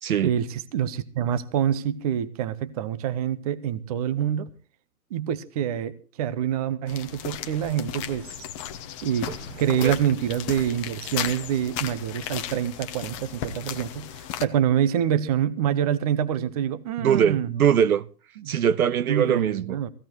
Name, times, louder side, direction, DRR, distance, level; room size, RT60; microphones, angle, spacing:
voice 1, 0.2-4.5 5.1-8.5 9.0-9.3 9.6-17.5 18.4-18.6 19.1-19.9, right 9 dB, 25° right, 0.8 m, -26 dB
sound 1, 6.9-14.4, left 10 dB, 20° left, 0.9 m, -35 dB
voice 2, 17.0-18.1 18.5-19.8, right 8 dB, 60° right, 0.8 m, -22 dB
20.0 x 16.0 x 3.0 m
hypercardioid pair, 145°, 49 cm